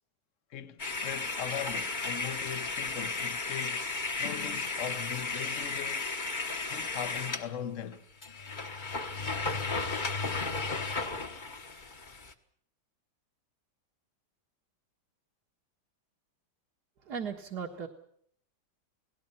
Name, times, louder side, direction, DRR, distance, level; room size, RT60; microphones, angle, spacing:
voice 1, 0.5-3.9 4.2-6.1 6.7-8.0, left 9 dB, 50° left, 1.3 m, -39 dB
sound 1, 0.8-7.5 7.9-8.0 8.2-12.3, left 3 dB, 30° left, 1.3 m, -34 dB
voice 2, 17.1-17.9, right 6 dB, 65° right, 2.3 m, -36 dB
29.5 x 18.5 x 5.7 m
omnidirectional pair, 1.9 m